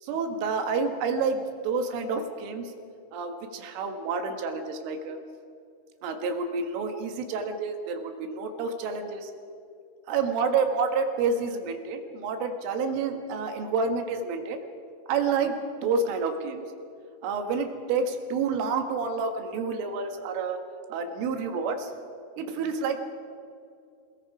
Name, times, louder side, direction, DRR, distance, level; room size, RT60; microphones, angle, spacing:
voice 1, 0.0-2.7 3.1-5.2 6.0-9.3 10.1-14.7 15.1-15.5 15.8-16.6 17.2-20.6 20.9-21.9 22.4-23.0, right 4 dB, 75° right, 5 dB, 4.0 m, -29 dB
28.5 x 19.0 x 4.9 m, 2.4 s
omnidirectional pair, 6.0 m